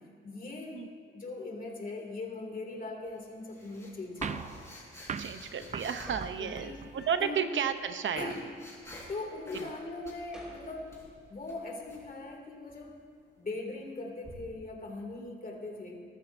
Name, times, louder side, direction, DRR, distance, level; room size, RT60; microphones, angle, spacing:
voice 1, 0.2-4.5 6.4-6.8 7.2-7.4 8.2-8.4 9.1-10.9 11.3-13.0 13.4-16.0, left 3 dB, 40° left, 0 dB, 2.4 m, -40 dB
sound 1, 3.1-6.9 7.6-9.2 9.4-9.8 10.0-12.0 14.2-14.3, left 1 dB, 15° left, 3.6 m, -48 dB
sound 2, 4.2-7.1, right 6 dB, 35° right, 0.4 m, -41 dB
voice 2, 5.2-8.3 9.5-9.7, right 7 dB, 65° right, 9 dB, 0.7 m, -32 dB
sound 3, 5.9-7.5 7.8-7.9 8.0-9.0 9.3-9.7 10.0-11.4 12.7-13.1, equal, 5° right, 3.5 m, -52 dB
20.5 x 13.0 x 2.6 m, 2.2 s
wide cardioid pair, 115°, 21 cm